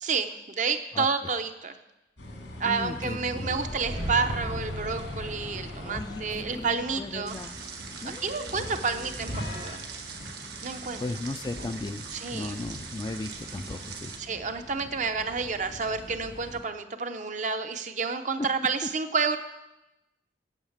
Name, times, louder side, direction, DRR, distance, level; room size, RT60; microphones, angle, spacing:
voice 1, 0.0-1.8 2.6-7.4 8.2-9.9 10.6-11.0 12.1-12.5 14.2-19.4, right 5 dB, 45° right, 8 dB, 0.7 m, -30 dB
sound 1, 2.2-16.6, left 1 dB, 90° left, 2.1 m, -42 dB
voice 2, 2.7-3.6 5.8-7.6 8.0-9.1 11.0-12.0 12.3-14.1, left 2 dB, 25° left, 10 dB, 0.3 m, -36 dB
sound 2, 3.4-8.3, equal, 85° right, 3.1 m, -38 dB
sound 3, 7.3-14.2, right 5 dB, 60° right, 1.4 m, -42 dB
8.9 x 7.2 x 7.2 m, 0.97 s
head